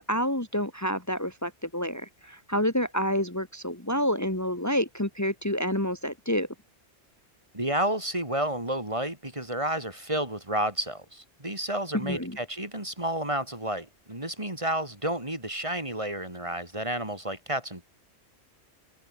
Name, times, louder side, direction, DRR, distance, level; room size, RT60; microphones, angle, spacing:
voice 1, 0.1-6.5 12.0-12.4, equal, 15° left, 2.2 m, -28 dB
voice 2, 7.5-17.8, right 1 dB, 25° right, 3.7 m, -31 dB
open air
omnidirectional pair, 1.2 m